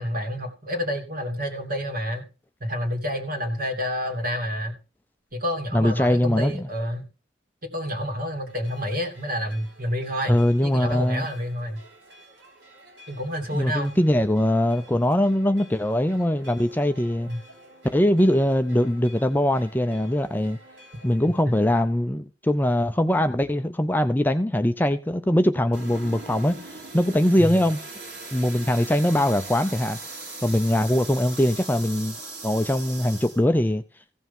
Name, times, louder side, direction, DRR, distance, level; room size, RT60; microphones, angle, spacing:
voice 1, 0.0-2.3 2.6-4.7 5.3-7.1 7.6-10.4 10.6-11.8 13.1-14.0 17.3-17.4 21.4-21.7 27.4-27.5, equal, 50° right, 2.8 m, -29 dB
voice 2, 5.7-6.7 10.3-11.3 13.5-17.3 17.9-20.6 21.0-27.8 28.3-30.0 30.4-32.1 32.4-33.8, left 1 dB, 10° left, 0.5 m, -22 dB
sound 1, 8.5-21.4, equal, 85° right, 4.1 m, -51 dB
sound 2, 25.7-33.4, right 3 dB, 70° right, 3.4 m, -39 dB
15.5 x 5.7 x 5.4 m
head